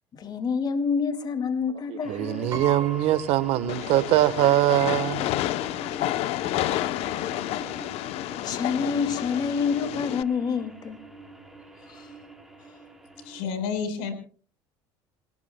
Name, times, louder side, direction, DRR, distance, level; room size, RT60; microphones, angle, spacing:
voice 1, 0.1-2.6 7.2-7.3 8.4-11.0 11.9-12.1, left 5 dB, 40° left, 2.2 m, -28 dB
sound 1, 2.0-13.5, right 2 dB, 5° right, 3.6 m, -45 dB
voice 2, 2.1-5.3, right 14 dB, 65° right, 1.2 m, -22 dB
Piano, 2.5-4.3 4.7-4.8 5.9-6.0 6.3-6.6, right 3 dB, 30° right, 3.5 m, -38 dB
Train, 3.7-10.2, left 14 dB, 65° left, 0.8 m, -30 dB
voice 3, 13.2-14.1, left 6 dB, 85° left, 4.7 m, -30 dB
28.5 x 18.5 x 2.2 m
supercardioid pair, 115°, 11 cm